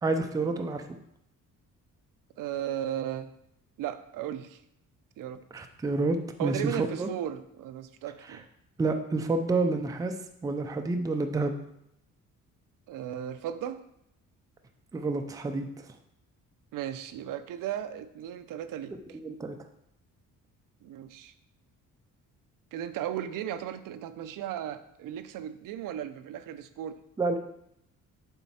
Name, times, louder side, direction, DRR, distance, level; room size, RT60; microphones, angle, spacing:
voice 1, 0.0-0.9 5.5-7.1 8.3-8.4 8.8-10.2 10.4-11.5 14.9-15.9 18.9-19.6 27.2-27.4, right 3 dB, 10° right, 6 dB, 0.4 m, -29 dB
voice 2, 2.4-3.3 3.8-4.6 5.2-5.4 6.4-8.4 12.9-13.8 16.7-19.2 20.8-21.3 22.7-27.0, right 10 dB, 75° right, 11 dB, 0.6 m, -36 dB
7.2 x 4.5 x 4.2 m, 0.76 s
cardioid pair, 165°, 32 cm